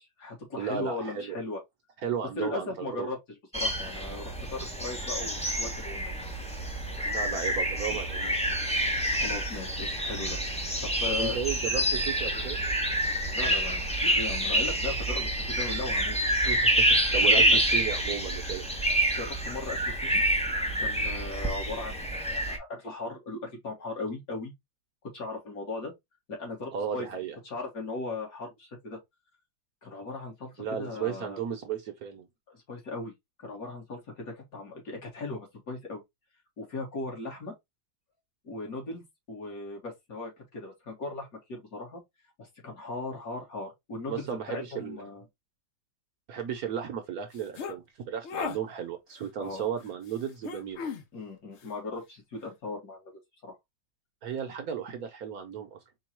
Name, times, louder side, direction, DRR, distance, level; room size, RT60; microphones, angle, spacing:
voice 1, 0.0-1.6 2.4-3.2 3.5-6.2 9.1-10.4 10.8-11.4 13.3-16.2 17.2-17.6 19.2-20.2 20.8-24.5 25.1-25.9 26.3-27.1 27.4-29.0 29.8-31.4 32.5-33.1 33.4-36.0 36.6-37.5 38.4-39.0 39.3-42.0 42.4-45.3 49.4-49.6 51.1-53.1 53.4-53.6, left 3 dB, 55° left, 2.0 m, -38 dB
voice 2, 0.6-1.4 2.0-3.1 7.0-8.4 11.1-12.6 16.5-18.6 26.7-27.4 30.6-32.3 44.1-45.1 46.3-50.8 54.2-55.8, right 8 dB, 60° right, 1.1 m, -34 dB
sound 1, 3.5-22.6, right 1 dB, 5° left, 0.6 m, -27 dB
sound 2, 47.3-47.8 48.2-48.6 50.4-51.0, left 7 dB, 85° left, 0.6 m, -35 dB
4.5 x 2.3 x 4.3 m
omnidirectional pair, 1.9 m